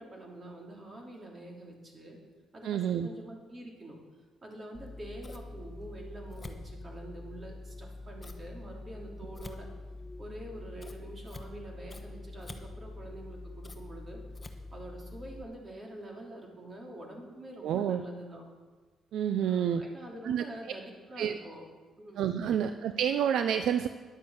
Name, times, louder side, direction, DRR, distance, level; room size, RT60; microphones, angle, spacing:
voice 1, 0.0-2.2 2.5-4.0 4.4-9.7 10.2-14.2 14.7-18.4 19.4-21.7 22.0-22.2, right 1 dB, 35° right, 0 dB, 3.0 m, -46 dB
voice 2, 2.6-3.1 17.6-18.0 19.1-19.8 20.2-20.4 21.2-21.4 22.2-23.9, right 9 dB, 75° right, 9 dB, 0.5 m, -28 dB
Scissors, 4.7-15.4, left 2 dB, 20° left, 1.1 m, -45 dB
10.5 x 7.6 x 7.2 m, 1.3 s
cardioid pair, 90°, 0 cm